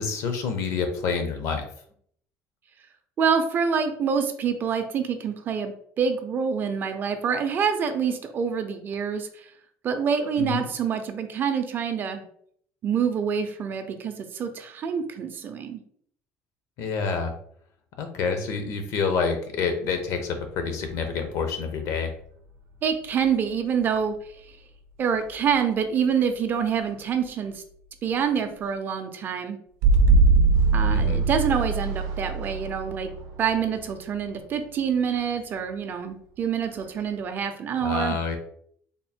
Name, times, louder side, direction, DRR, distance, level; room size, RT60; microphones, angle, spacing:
voice 1, 0.0-1.7 10.4-10.6 16.8-17.3 18.0-22.1 30.9-31.2 37.8-38.4, left 5 dB, 60° left, 6 dB, 0.7 m, -27 dB
voice 2, 3.2-9.4 9.8-12.2 12.8-15.8 22.8-24.1 25.0-27.6 28.0-29.6 30.7-33.1 33.4-38.2, right 7 dB, 35° right, 7 dB, 0.4 m, -26 dB
sound 1, 20.6-21.5 23.2-23.3 29.8-34.5, right 4 dB, 90° right, 0.5 m, -22 dB
3.6 x 2.1 x 4.2 m, 0.63 s
cardioid pair, 155°, 6 cm